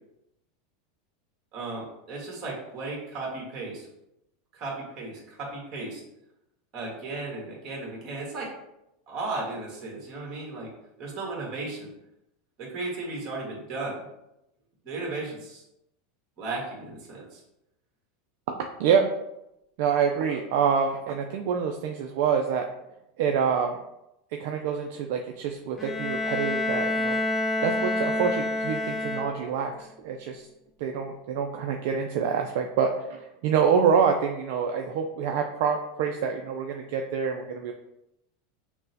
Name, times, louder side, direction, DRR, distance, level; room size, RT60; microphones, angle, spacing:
voice 1, 1.5-3.9 4.5-6.0 6.7-8.5 9.1-10.7 11.0-11.9 12.6-14.1 14.8-15.6 16.4-17.4, right 3 dB, 40° right, -2 dB, 1.5 m, -35 dB
voice 2, 18.8-19.2 19.8-22.7 23.2-23.8 24.3-27.2 27.6-30.5 30.8-37.7, right 6 dB, 65° right, 3 dB, 0.3 m, -26 dB
Bowed string instrument, 25.8-29.7, left 2 dB, 10° left, 0.3 m, -28 dB
5.9 x 2.1 x 2.7 m, 0.86 s
supercardioid pair, 145°, 0 cm